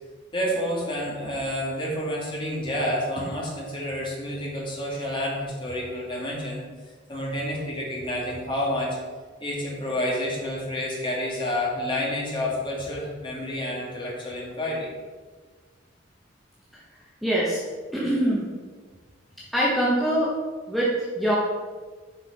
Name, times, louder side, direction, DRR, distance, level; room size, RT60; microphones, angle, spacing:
voice 1, 0.3-6.6 7.1-9.0 9.4-14.9, left 1 dB, 25° left, -4 dB, 2.2 m, -29 dB
voice 2, 17.2-17.6 17.9-18.5 19.5-20.3 20.7-21.3, right 1 dB, ahead, -7 dB, 1.1 m, -23 dB
6.4 x 5.4 x 5.3 m, 1.5 s
head